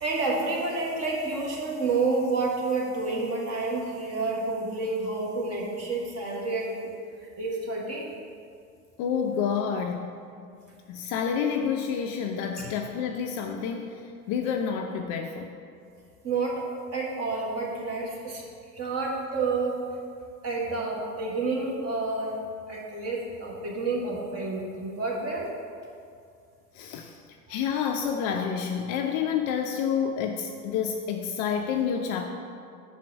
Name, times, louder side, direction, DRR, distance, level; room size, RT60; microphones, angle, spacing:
voice 1, 0.0-6.9 7.4-8.1 12.6-12.7 16.2-16.6 16.9-18.4 18.7-19.8 20.4-22.4 22.7-25.5 27.5-27.6, right 3 dB, 30° right, -3 dB, 1.6 m, -29 dB
voice 2, 9.0-10.1 10.9-13.9 14.3-15.5 26.7-27.2 27.5-32.2, left 7 dB, 40° left, 4 dB, 0.5 m, -28 dB
5.4 x 4.5 x 6.1 m, 2.3 s
figure-of-eight pair, 80°, 46 cm